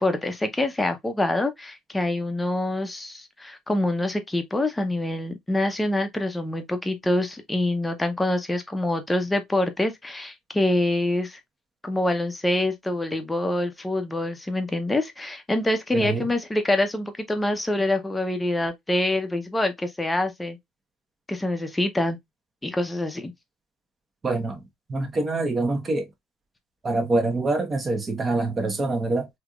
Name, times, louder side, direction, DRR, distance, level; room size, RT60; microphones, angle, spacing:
voice 1, 0.0-11.4 11.8-20.6 21.3-22.2 22.6-23.3, left 1 dB, 10° left, 0.8 m, -25 dB
voice 2, 15.9-16.3 24.2-24.6 24.9-26.1 26.8-29.3, right 2 dB, 25° right, 1.1 m, -25 dB
3.3 x 2.9 x 2.4 m
supercardioid pair, 105°, 0 cm